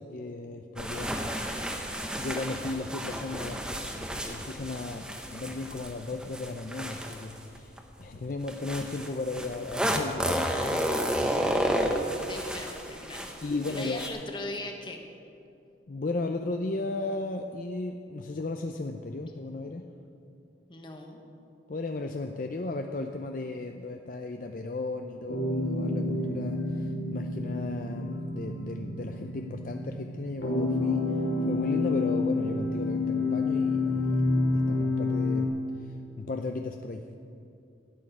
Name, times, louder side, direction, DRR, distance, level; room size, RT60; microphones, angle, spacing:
voice 1, 0.0-1.5 1.7-1.8 2.2-11.9 13.4-14.0 15.9-19.9 21.7-34.3 34.5-37.0, left 2 dB, 45° left, 5 dB, 0.5 m, -35 dB
sound 1, 0.8-7.8 8.5-14.1, equal, 5° right, 0.8 m, -32 dB
voice 2, 12.1-13.3 13.6-15.0 20.7-21.2, left 2 dB, 25° left, 3 dB, 1.2 m, -39 dB
sound 2, 25.3-35.5, left 2 dB, 85° left, 2.4 m, -29 dB
13.0 x 6.4 x 9.7 m, 2.5 s
head